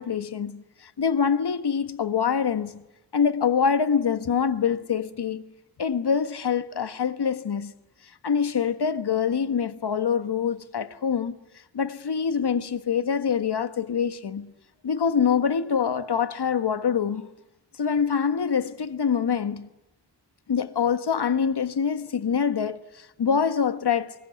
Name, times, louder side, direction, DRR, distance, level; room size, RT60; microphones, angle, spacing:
voice 1, 0.0-2.8 3.1-5.5 5.8-7.7 8.2-11.4 11.7-14.5 14.8-17.3 17.8-19.7 20.5-24.1, left 7 dB, 65° left, 1.4 m, -25 dB
24.0 x 22.0 x 9.5 m
wide cardioid pair, 100°, 42 cm